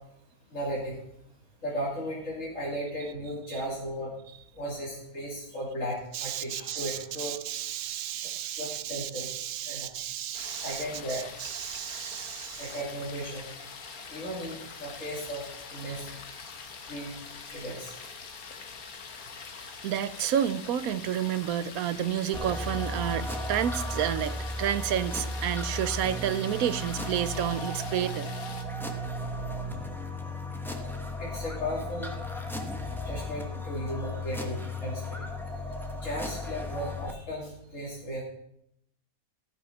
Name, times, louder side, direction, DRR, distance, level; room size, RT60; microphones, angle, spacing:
voice 1, 0.5-1.0 1.6-4.1 4.5-7.4 8.6-9.3 9.7-9.9 10.6-11.2 12.6-13.5 14.1-15.4 15.7-16.1 16.9-17.1 17.5-18.0 31.2-32.1 33.0-35.3 35.9-38.2, equal, 60° left, -6 dB, 3.1 m, -35 dB
voice 2, 6.1-10.8 11.1-12.8 19.6-28.3, right 10 dB, 80° right, 14 dB, 1.1 m, -31 dB
sound 1, 10.3-28.6, left 5 dB, 80° left, 1.6 m, -44 dB
sound 2, 22.3-37.1, left 1 dB, ahead, 0.9 m, -35 dB
15.0 x 6.3 x 5.8 m, 0.76 s
omnidirectional pair, 1.5 m